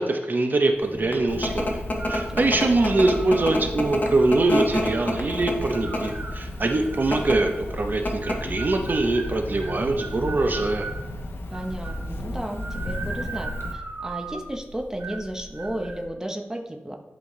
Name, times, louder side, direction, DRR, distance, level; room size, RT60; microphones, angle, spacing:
voice 1, 0.0-1.8 2.1-10.9, right 2 dB, 50° right, 4 dB, 0.6 m, -23 dB
sound 1, 0.8-16.0, left 1 dB, 45° left, 1.0 m, -31 dB
Cricket, 1.3-13.7, left 1 dB, 70° left, 0.8 m, -34 dB
sound 2, 2.0-2.4 2.9-3.6 4.2-5.2 5.7-7.6 8.2-11.0 11.5-12.1 12.6-14.5 15.0-15.3 15.5-16.0, right 4 dB, 80° right, 0.8 m, -38 dB
voice 2, 11.5-17.0, right 1 dB, 15° right, 3 dB, 0.7 m, -33 dB
11.0 x 4.1 x 3.1 m, 1.0 s
wide cardioid pair, 100°, 4 cm